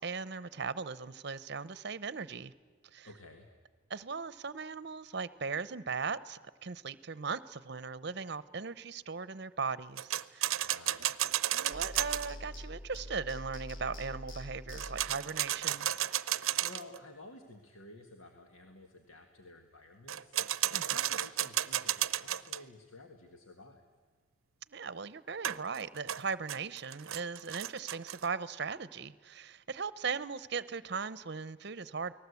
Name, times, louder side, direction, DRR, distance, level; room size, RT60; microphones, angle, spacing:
voice 1, 0.0-2.5 2.9-3.1 3.9-10.7 11.5-15.9 20.7-20.8 24.7-32.1, right 5 dB, 55° right, 16 dB, 0.7 m, -38 dB
voice 2, 3.0-3.5 10.6-11.1 16.6-23.8, left 2 dB, 90° left, 4 dB, 1.8 m, -53 dB
sound 1, 10.0-12.3 14.7-17.0 20.1-22.6 25.4-28.3, right 12 dB, 90° right, 0.6 m, -33 dB
sound 2, 11.7-15.3, left 1 dB, 65° left, 1.5 m, -45 dB
29.0 x 19.0 x 8.3 m, 1.4 s
head